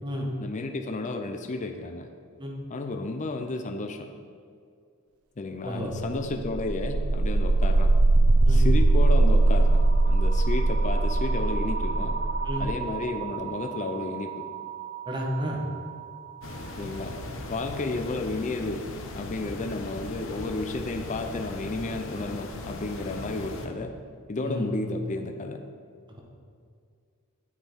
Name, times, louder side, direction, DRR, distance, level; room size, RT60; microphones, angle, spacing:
voice 1, 0.4-2.1 2.7-4.1 5.4-7.9 8.5-12.2 12.6-14.5 16.8-17.2 17.5-18.9 19.2-23.9 24.3-25.6, left 2 dB, 35° left, 5 dB, 0.5 m, -32 dB
sound 1, 6.1-16.0, right 2 dB, 85° right, 0.7 m, -23 dB
voice 2, 15.1-15.6 24.4-24.6, equal, 20° right, -1 dB, 1.4 m, -31 dB
sound 2, 16.4-23.7, left 2 dB, 65° left, 0.9 m, -38 dB
8.4 x 7.6 x 4.5 m, 2.2 s
head